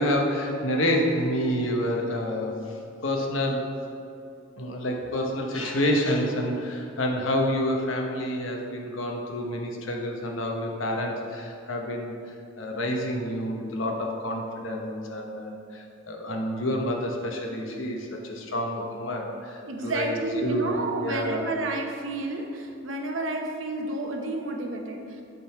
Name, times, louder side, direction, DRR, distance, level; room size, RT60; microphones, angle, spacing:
voice 1, 0.0-2.8 3.0-3.7 4.6-20.7 21.0-21.4, left 1 dB, 85° left, 1 dB, 1.0 m, -28 dB
voice 2, 19.6-25.2, right 2 dB, 80° right, 3 dB, 0.8 m, -31 dB
7.4 x 3.9 x 5.7 m, 2.6 s
head